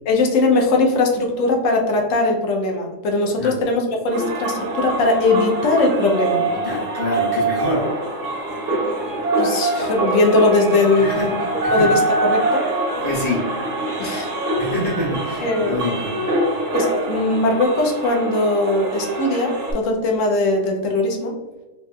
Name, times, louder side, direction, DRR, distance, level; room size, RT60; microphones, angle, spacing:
voice 1, 0.1-6.4 8.7-8.9 9.3-11.3 11.7-12.7 14.0-14.3 15.4-15.8 16.7-21.3, left 2 dB, 85° left, 1 dB, 1.0 m, -20 dB
sound 1, 4.1-19.7, right 2 dB, 90° right, 1.1 m, -24 dB
voice 2, 6.4-7.9 10.9-12.0 13.0-13.5 14.6-16.3, left 1 dB, 50° left, -6 dB, 1.2 m, -26 dB
3.2 x 2.7 x 2.2 m, 1.1 s
omnidirectional pair, 1.3 m